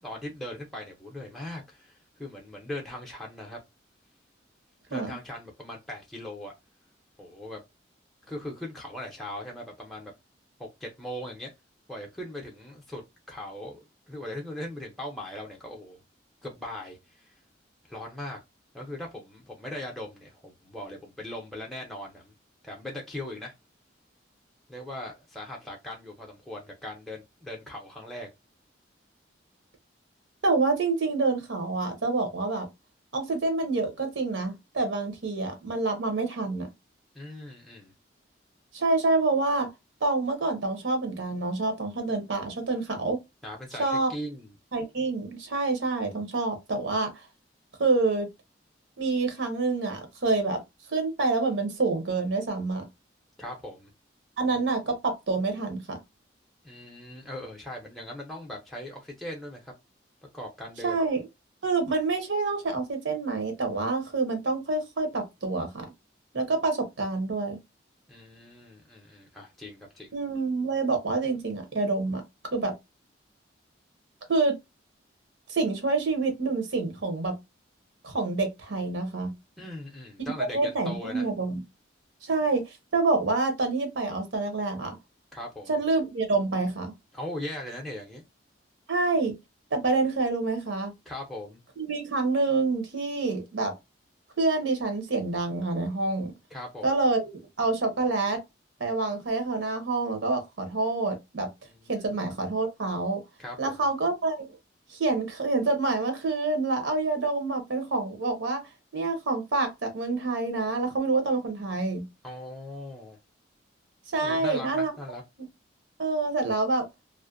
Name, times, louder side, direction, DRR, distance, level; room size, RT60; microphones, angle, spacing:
voice 1, 0.0-3.6 4.9-6.5 7.2-7.6 8.3-10.1 10.6-11.5 11.9-13.0 13.3-16.0 16.4-17.3 17.9-18.4 18.7-22.3 22.6-23.5 24.7-28.3 37.1-37.9 43.4-44.5 53.4-53.9 56.6-59.7 60.3-61.0 68.1-70.1 79.6-81.3 85.3-85.7 87.1-88.3 91.1-91.6 96.5-96.9 101.7-102.1 103.4-103.8 112.2-113.2 114.2-115.2, left 1 dB, ahead, 0.5 m, -39 dB
voice 2, 30.4-32.7 33.1-36.7 38.7-39.7 40.0-43.2 43.8-44.1 44.7-47.2 47.8-48.3 49.0-50.6 50.9-52.9 54.4-56.0 60.8-61.2 61.6-65.9 66.3-67.6 70.1-72.2 72.5-72.7 74.3-74.6 75.5-77.4 78.0-79.3 80.2-81.6 82.2-85.0 85.7-86.9 88.9-89.3 89.7-90.9 91.8-93.7 94.4-96.3 96.8-97.3 97.6-98.4 98.8-101.5 101.9-103.2 103.6-104.4 104.9-108.6 108.9-112.0 114.1-114.9 116.0-116.9, right 3 dB, 75° right, 0.7 m, -27 dB
2.5 x 2.1 x 2.4 m
head